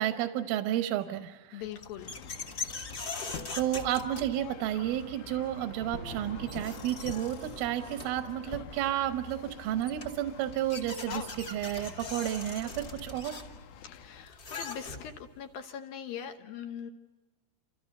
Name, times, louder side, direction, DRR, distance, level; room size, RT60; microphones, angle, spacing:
voice 1, 0.0-1.6 3.6-13.4, right 12 dB, 85° right, 7 dB, 3.6 m, -31 dB
voice 2, 1.5-2.1 13.9-16.9, left 8 dB, 70° left, 6 dB, 2.3 m, -41 dB
sound 1, 1.6-4.8 6.1-6.2 6.4-8.3 9.4-9.5 9.8-15.3, left 4 dB, 35° left, 1.7 m, -42 dB
sound 2, 2.0-15.1, left 7 dB, 90° left, 3.9 m, -47 dB
sound 3, 2.4-9.7, right 4 dB, 60° right, 1.6 m, -50 dB
28.5 x 28.0 x 6.6 m, 1.1 s
omnidirectional pair, 5.6 m